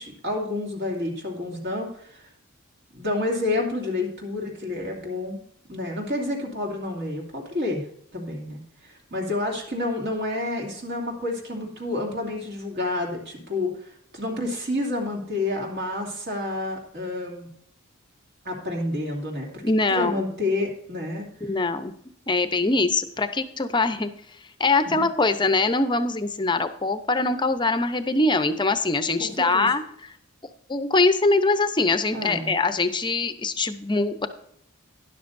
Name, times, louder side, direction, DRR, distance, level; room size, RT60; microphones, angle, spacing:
voice 1, 0.0-2.3 2.9-5.4 5.7-7.9 8.1-17.5 18.4-19.6 19.9-21.3 29.2-29.7 32.1-32.5, left 2 dB, 50° right, -1 dB, 2.7 m, -29 dB
voice 2, 19.6-20.2 21.4-21.9 22.3-24.1 24.6-30.1 30.7-34.3, left 3 dB, 20° left, 10 dB, 0.7 m, -23 dB
12.5 x 11.0 x 2.6 m, 0.68 s
head